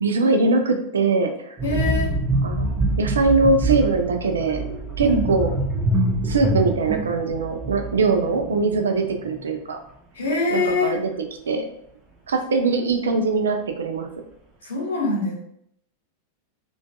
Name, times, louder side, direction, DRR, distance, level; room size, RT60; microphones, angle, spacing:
voice 1, 0.0-1.6 2.4-2.6 3.0-4.6 5.0-5.5 6.2-9.8 10.5-11.1 11.5-11.7 12.3-14.1, right 3 dB, 70° right, 5 dB, 0.3 m, -21 dB
voice 2, 1.6-2.1 5.0-5.3 10.1-11.0 14.6-15.3, left 2 dB, 65° left, -2 dB, 0.7 m, -23 dB
sound 1, 1.6-9.0 9.2-9.5, right 1 dB, 20° right, 0.6 m, -25 dB
2.5 x 2.2 x 2.2 m, 0.72 s
figure-of-eight pair, 90°, 0 cm